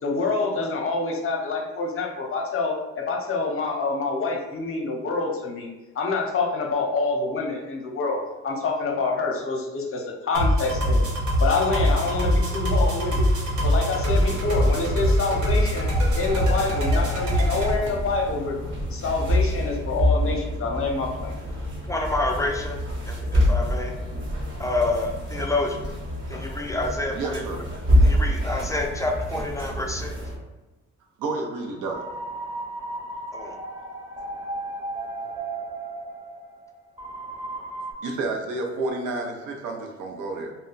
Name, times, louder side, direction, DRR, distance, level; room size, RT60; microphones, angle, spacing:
voice 1, 0.0-11.1 11.4-13.3 13.6-18.6 18.9-21.3, left 3 dB, 45° left, 1 dB, 0.7 m, -27 dB
sound 1, 10.3-17.7, equal, 65° right, 1.0 m, -22 dB
sound 2, 14.0-30.4, left 1 dB, 40° right, 0.9 m, -27 dB
voice 2, 21.9-22.8 23.1-23.9 24.6-25.8 26.3-27.4 28.0-30.1 33.3-33.6, left 2 dB, 10° left, 1 dB, 0.3 m, -28 dB
voice 3, 27.1-27.6 31.2-32.0 38.0-40.6, right 3 dB, 90° right, 2 dB, 0.6 m, -30 dB
sound 3, 31.7-37.9, right 2 dB, 20° right, 0.8 m, -35 dB
2.2 x 2.0 x 3.8 m, 1.1 s
cardioid pair, 90°, 30 cm